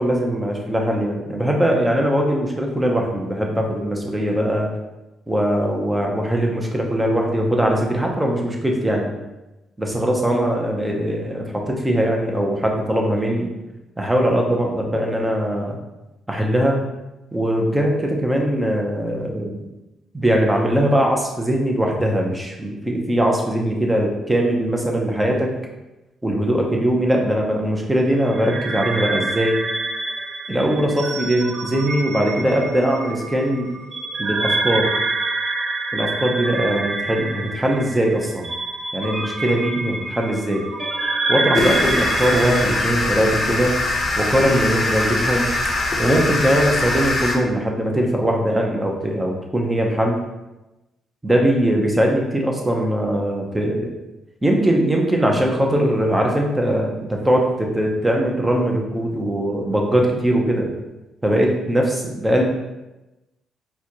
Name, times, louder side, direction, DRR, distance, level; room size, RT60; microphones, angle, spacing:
voice 1, 0.0-4.7 5.3-9.2 9.8-13.5 14.0-15.8 16.3-16.8 17.3-19.6 20.1-25.5 26.2-29.6 30.5-33.7 34.2-35.0 35.9-38.5 38.9-40.6 41.3-43.8 44.2-45.5 46.0-50.2 51.2-53.9 54.4-60.7 61.2-62.4, right 1 dB, 10° right, 0 dB, 0.7 m, -21 dB
sound 1, 28.2-42.7, right 3 dB, 45° right, 0.4 m, -26 dB
sound 2, 39.0-45.9, left 1 dB, 20° left, 1.2 m, -38 dB
sound 3, 41.5-47.4, left 2 dB, 35° left, 0.7 m, -22 dB
4.3 x 2.3 x 2.9 m, 1.0 s
cardioid pair, 90°, 0 cm